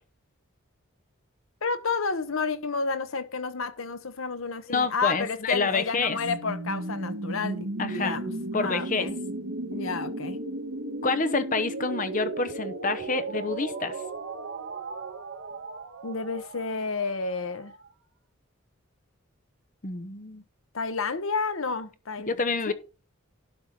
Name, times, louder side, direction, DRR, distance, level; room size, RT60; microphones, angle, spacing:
voice 1, 1.6-8.3 8.6-9.1 9.7-10.4 16.0-17.7 20.7-22.4 22.7-22.8, left 4 dB, 75° left, 1.0 m, -31 dB
voice 2, 4.7-6.2 7.8-8.2 8.5-9.1 11.0-13.9 19.8-20.4 22.3-22.7, left 4 dB, 40° left, 0.8 m, -28 dB
sound 1, 6.0-17.8, right 2 dB, 70° right, 1.7 m, -35 dB
11.5 x 4.4 x 5.3 m
head